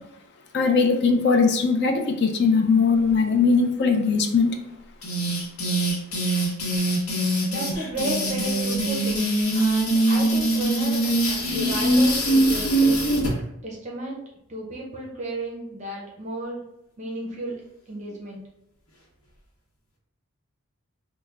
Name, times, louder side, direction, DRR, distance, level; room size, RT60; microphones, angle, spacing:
voice 1, 0.5-4.6, left 4 dB, 50° left, 5 dB, 0.4 m, -20 dB
sound 1, 5.0-13.3, right 1 dB, 80° left, 0.8 m, -22 dB
voice 2, 7.4-13.0 13.6-14.2 14.5-16.6 17.0-17.5 17.9-18.4, right 1 dB, 30° right, -2 dB, 0.5 m, -33 dB
3.3 x 2.0 x 3.5 m, 0.84 s
head